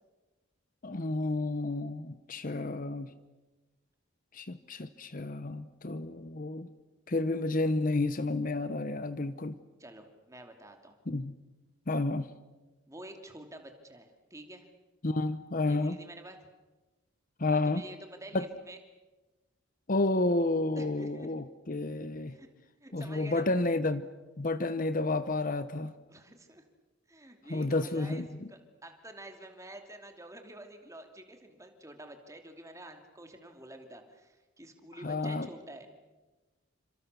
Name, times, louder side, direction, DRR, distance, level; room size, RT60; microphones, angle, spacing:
voice 1, 0.8-3.1 4.3-6.7 7.1-9.6 11.1-11.3 11.9-12.3 15.0-16.0 17.4-17.8 18.3-18.5 19.9-22.4 22.9-24.0 24.4-25.9 27.5-28.5 35.0-35.5, left 2 dB, 40° left, 13 dB, 0.9 m, -31 dB
voice 2, 9.8-11.0 12.9-14.7 15.7-16.4 17.6-18.8 20.8-21.3 22.3-22.5 22.8-23.5 26.1-26.6 27.1-35.9, right 1 dB, 15° right, 5 dB, 2.8 m, -48 dB
29.0 x 26.0 x 6.9 m, 1.2 s
head